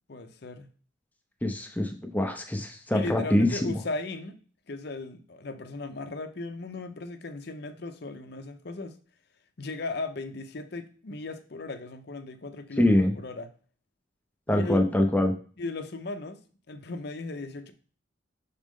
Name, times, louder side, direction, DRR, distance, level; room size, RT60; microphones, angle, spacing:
voice 1, 0.1-0.7 2.9-4.4 4.7-9.0 9.6-13.5 14.5-14.8 15.6-16.4 16.7-17.7, left 2 dB, 55° left, 8 dB, 0.6 m, -37 dB
voice 2, 1.4-3.8 12.8-13.1 14.5-15.3, left 1 dB, 10° left, 4 dB, 0.6 m, -24 dB
6.3 x 4.2 x 3.6 m, 0.40 s
head